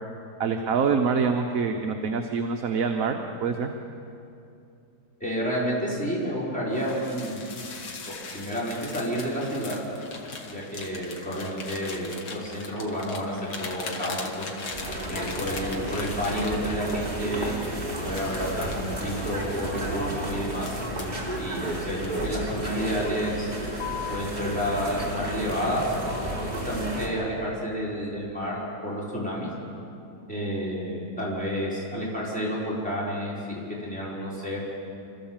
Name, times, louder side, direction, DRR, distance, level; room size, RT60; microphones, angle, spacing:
voice 1, 0.4-3.7, right 5 dB, 55° right, 4 dB, 1.3 m, -25 dB
voice 2, 5.2-7.5 8.1-9.8 10.5-14.6 15.1-20.7 21.4-23.5 24.1-25.8 26.5-29.5 30.3-34.6, equal, 5° left, -7 dB, 5.0 m, -30 dB
sound 1, 6.7-17.5 18.0-21.2 21.7-22.7 23.0-23.3 23.7-24.3, left 4 dB, 85° left, 2.3 m, -40 dB
sound 2, 14.7-27.1, right 1 dB, 25° right, 3.6 m, -32 dB
26.5 x 14.5 x 7.4 m, 2.6 s
omnidirectional pair, 1.9 m